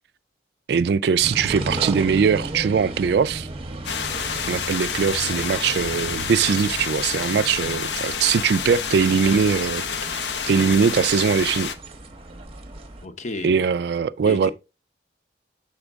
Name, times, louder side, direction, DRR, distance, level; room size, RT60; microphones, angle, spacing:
voice 1, 0.7-3.5 4.5-9.8 10.1-11.7 13.4-14.5, right 6 dB, 65° right, 0.3 m, -21 dB
sound 1, 1.2-13.0, right 2 dB, 30° right, 0.8 m, -35 dB
sound 2, 3.8-11.7, left 6 dB, 75° left, 0.7 m, -29 dB
voice 2, 13.0-13.6 14.3-14.5, left 2 dB, 40° left, 0.8 m, -32 dB
7.1 x 5.0 x 3.5 m
head